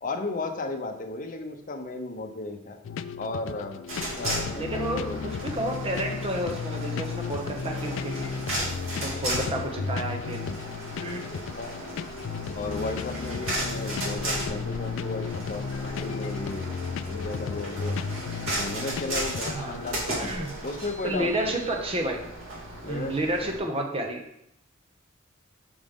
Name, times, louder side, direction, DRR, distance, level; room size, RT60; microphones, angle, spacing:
voice 1, 0.0-2.8 3.2-5.2 9.3-9.5 11.3-11.8 12.5-16.7 17.1-18.0 18.5-20.3 20.6-21.6 22.8-23.6, left 2 dB, 40° left, 3 dB, 0.8 m, -35 dB
sound 1, 2.8-20.0, left 5 dB, 70° left, 0.3 m, -34 dB
sound 2, 3.9-23.6, right 1 dB, 80° right, 2.4 m, -35 dB
voice 2, 4.5-8.3 9.0-10.5 11.0-11.2 19.4-19.8 20.2-20.5 21.0-22.2 22.9-24.2, right 1 dB, 30° right, 2 dB, 0.9 m, -30 dB
7.1 x 5.1 x 3.6 m, 0.78 s
head